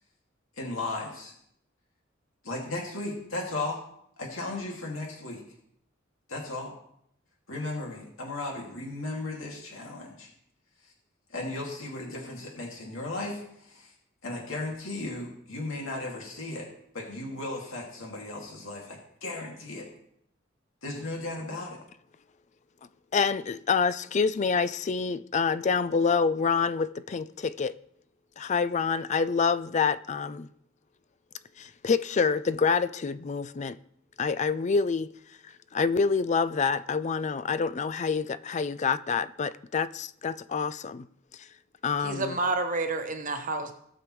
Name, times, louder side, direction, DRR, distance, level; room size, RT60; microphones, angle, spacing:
voice 1, 0.6-1.3 2.4-3.8 4.2-5.4 6.3-6.7 7.5-10.3 11.3-13.9 14.2-16.7 16.9-19.9 20.8-21.8, left 2 dB, 80° left, 2.3 m, -35 dB
voice 2, 23.1-27.7 28.4-30.5 31.6-33.8 34.2-35.1 35.4-41.1 41.4-41.5 41.8-42.4, left 5 dB, 35° left, 0.4 m, -27 dB
voice 3, 42.0-43.7, right 3 dB, 40° right, 1.1 m, -29 dB
18.0 x 6.9 x 3.1 m
head